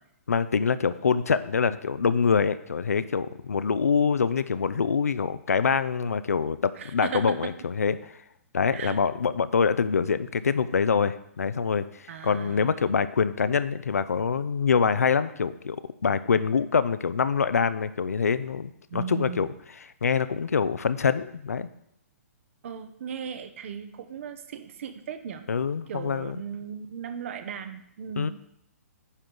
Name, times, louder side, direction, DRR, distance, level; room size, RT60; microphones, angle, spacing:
voice 1, 0.3-8.1 8.5-11.9 12.2-15.8 16.0-19.5 19.8-21.7 25.5-26.4 28.2-28.3, left 6 dB, 75° left, 14 dB, 0.5 m, -25 dB
voice 2, 6.8-7.5 8.7-9.0 12.1-12.9 18.9-19.5 22.6-25.4 25.9-28.3, right 7 dB, 55° right, 9 dB, 0.9 m, -37 dB
9.8 x 3.8 x 6.1 m, 0.74 s
figure-of-eight pair, 125°, 8 cm